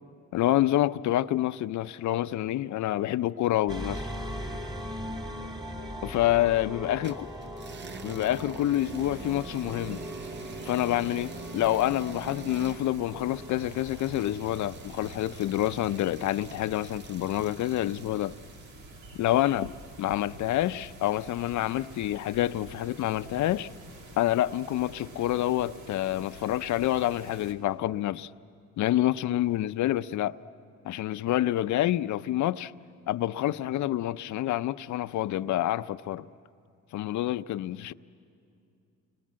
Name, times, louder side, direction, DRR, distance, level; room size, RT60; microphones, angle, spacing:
voice 1, 0.3-4.0 6.0-7.3 8.0-10.0 10.7-18.4 19.1-19.7 20.0-23.7 24.2-28.3 28.8-30.4 30.8-32.7 33.1-36.3 36.9-37.9, left 14 dB, 75° left, 0.6 m, -27 dB
sound 1, 3.7-15.0, equal, 15° right, 2.5 m, -40 dB
sound 2, 7.0-18.8, right 5 dB, 35° right, 0.7 m, -44 dB
sound 3, 8.8-27.5, right 2 dB, 80° right, 2.6 m, -48 dB
29.0 x 23.5 x 7.5 m
cardioid pair, 90°, 30 cm